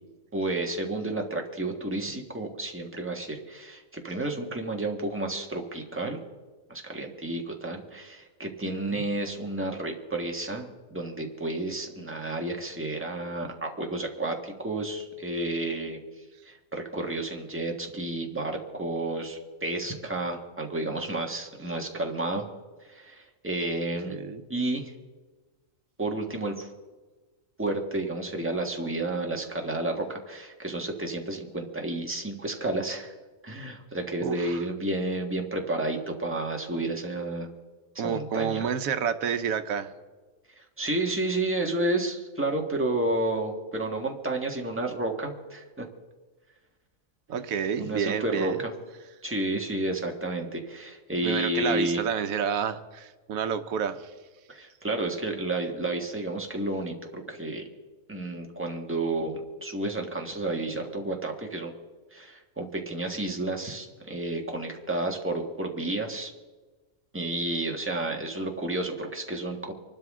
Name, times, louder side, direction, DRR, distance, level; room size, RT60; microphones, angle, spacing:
voice 1, 0.3-6.2 6.7-16.0 16.5-22.5 22.9-24.1 24.5-24.9 26.0-26.7 27.6-33.1 33.4-37.5 37.9-38.6 40.6-45.8 47.8-48.7 49.2-52.0 54.5-57.6 58.1-61.7 62.1-66.3 67.1-69.7, right 2 dB, 10° right, 1 dB, 1.5 m, -31 dB
voice 2, 8.6-9.1 24.1-24.4 34.2-34.6 38.0-39.9 47.3-48.6 51.2-54.0, right 7 dB, 90° right, 10 dB, 1.2 m, -29 dB
25.0 x 12.5 x 3.7 m, 1.3 s
omnidirectional pair, 1.4 m